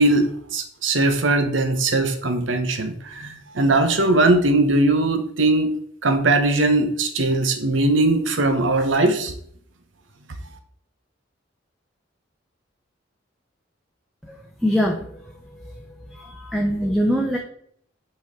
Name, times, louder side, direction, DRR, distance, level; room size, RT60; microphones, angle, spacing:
voice 1, 0.0-5.7 6.0-9.3, right 2 dB, 85° right, 7 dB, 1.0 m, -20 dB
voice 2, 14.3-15.1 16.1-17.4, equal, ahead, 1 dB, 0.7 m, -23 dB
6.0 x 4.4 x 5.0 m, 0.65 s
head